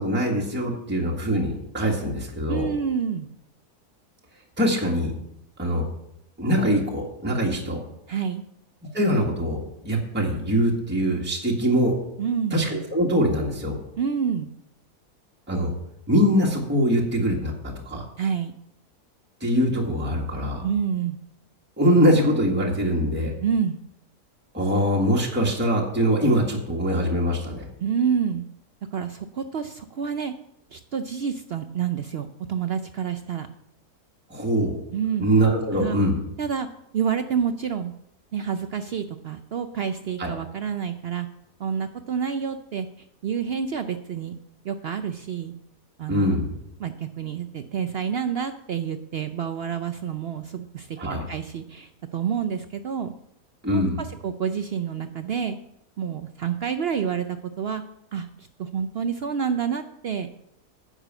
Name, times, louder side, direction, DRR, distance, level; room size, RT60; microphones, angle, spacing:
voice 1, 0.0-2.7 4.6-5.1 5.6-5.9 6.4-7.8 8.9-11.9 12.5-13.8 15.5-15.7 16.1-18.1 19.4-20.6 21.8-23.3 24.5-27.7 34.3-34.7 35.2-36.2 40.2-40.3 46.1-46.5 51.0-51.2 53.6-54.0, equal, 5° right, -2 dB, 1.6 m, -23 dB
voice 2, 2.5-3.3 8.1-8.4 12.2-12.6 14.0-14.5 18.2-18.5 20.6-21.2 23.4-23.8 27.8-28.4 28.9-30.3 30.7-33.5 34.9-35.3 35.7-36.0 36.4-36.7 36.9-37.9 38.3-41.3 41.6-44.4 44.6-45.5 46.0-46.3 46.8-53.1 53.7-55.6 56.0-57.8 58.1-60.3, right 7 dB, 80° right, 9 dB, 0.5 m, -28 dB
9.8 x 6.5 x 7.6 m, 0.80 s
omnidirectional pair, 1.7 m